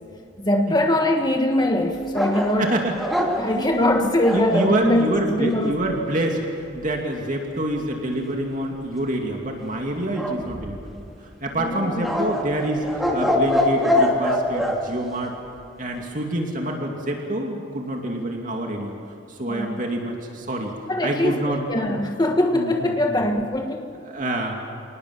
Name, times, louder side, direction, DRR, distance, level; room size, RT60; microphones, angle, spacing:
voice 1, 0.4-2.8 3.4-5.8 11.6-12.1 19.5-19.8 20.9-23.9, left 1 dB, 20° left, 3 dB, 1.5 m, -22 dB
sound 1, 2.1-4.8 10.1-11.0 12.0-14.8, left 1 dB, ahead, 2.8 m, -23 dB
voice 2, 2.6-2.9 3.4-6.4 6.7-11.0 11.4-12.9 13.1-15.3 15.8-18.9 19.4-20.7 21.0-21.6 21.9-22.0 22.5-22.9 24.1-24.6, right 1 dB, 45° right, 1 dB, 2.7 m, -27 dB
28.0 x 19.5 x 7.3 m, 2.8 s
head